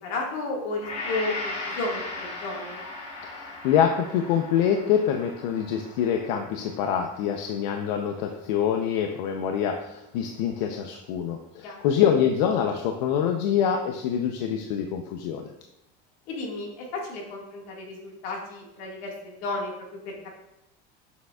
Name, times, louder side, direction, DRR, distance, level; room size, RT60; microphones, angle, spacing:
voice 1, 0.0-2.8 11.6-11.8 16.3-19.7 20.0-20.3, left 2 dB, 65° left, -1 dB, 1.8 m, -33 dB
Gong, 0.8-9.1 9.6-9.7, left 2 dB, 30° left, 1.3 m, -38 dB
voice 2, 3.3-15.5, left 8 dB, 85° left, 4 dB, 0.6 m, -25 dB
7.0 x 6.5 x 2.3 m, 0.86 s
cardioid pair, 165°, 21 cm